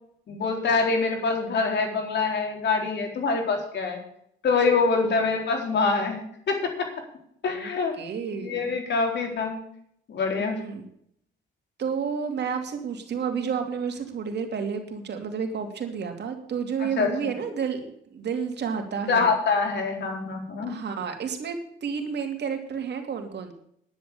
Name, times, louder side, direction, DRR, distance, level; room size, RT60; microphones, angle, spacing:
voice 1, 0.3-4.0 4.4-6.2 6.5-6.9 7.4-7.9 8.3-9.6 10.1-10.6 16.8-17.3 19.1-20.8, left 4 dB, 60° left, 3 dB, 4.1 m, -25 dB
voice 2, 8.0-8.7 10.4-10.8 11.8-19.3 20.7-23.5, right 6 dB, 60° right, 4 dB, 2.8 m, -31 dB
11.0 x 10.0 x 6.9 m, 0.69 s
cardioid pair, 90°, 20 cm